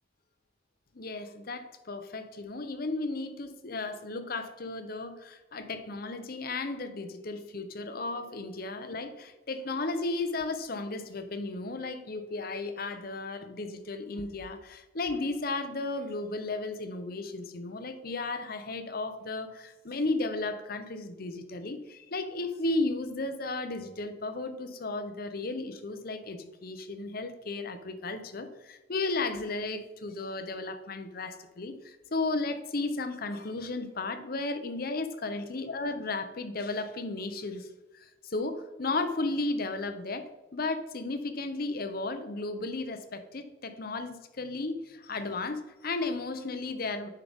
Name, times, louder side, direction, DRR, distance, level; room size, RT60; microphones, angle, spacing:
voice 1, 0.9-37.7 37.9-47.1, left 3 dB, 50° left, 9 dB, 0.8 m, -34 dB
9.8 x 5.6 x 3.6 m, 1.1 s
head